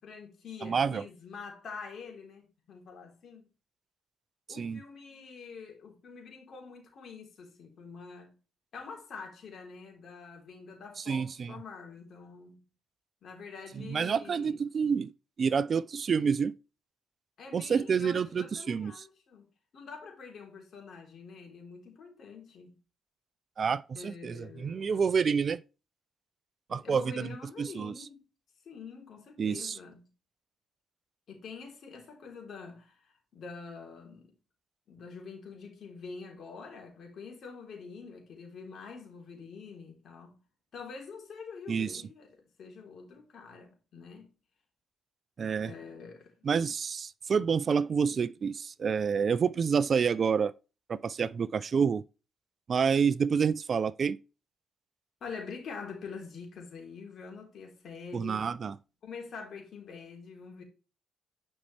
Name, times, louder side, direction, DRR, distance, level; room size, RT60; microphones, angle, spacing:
voice 1, 0.0-3.4 4.5-8.4 8.7-12.6 13.2-14.6 17.4-19.5 19.7-22.8 23.9-24.8 26.7-28.3 28.6-30.1 31.3-34.3 34.9-40.4 40.7-44.3 45.5-46.3 55.2-58.6 59.0-60.6, left 5 dB, 60° left, 3.4 m, -46 dB
voice 2, 0.6-1.0 4.5-4.8 11.0-11.5 13.8-15.1 15.4-16.5 17.5-19.0 23.6-25.6 26.7-27.9 29.4-29.8 41.7-42.0 45.4-45.7 46.4-50.5 50.9-52.0 52.7-54.2 58.1-58.7, right 6 dB, 45° right, 0.4 m, -28 dB
10.5 x 5.4 x 3.3 m
cardioid pair, 90°, 0 cm